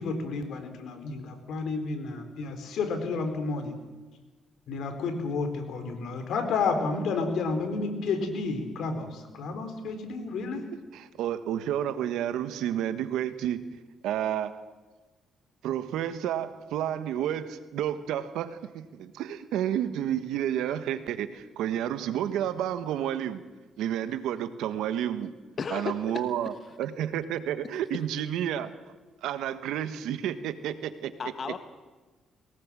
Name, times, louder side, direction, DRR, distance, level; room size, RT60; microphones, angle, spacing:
voice 1, 0.0-3.7 4.7-10.6, left 4 dB, 75° left, 6 dB, 4.3 m, -31 dB
voice 2, 10.9-13.8 14.0-14.6 15.6-23.4 23.8-25.4 25.7-28.8 29.2-31.1, right 10 dB, 90° right, 11 dB, 1.4 m, -30 dB
voice 3, 25.6-26.2 26.5-26.6 31.2-31.6, left 5 dB, 45° left, 9 dB, 1.1 m, -34 dB
22.5 x 19.0 x 7.6 m, 1.3 s
cardioid pair, 90°, 0 cm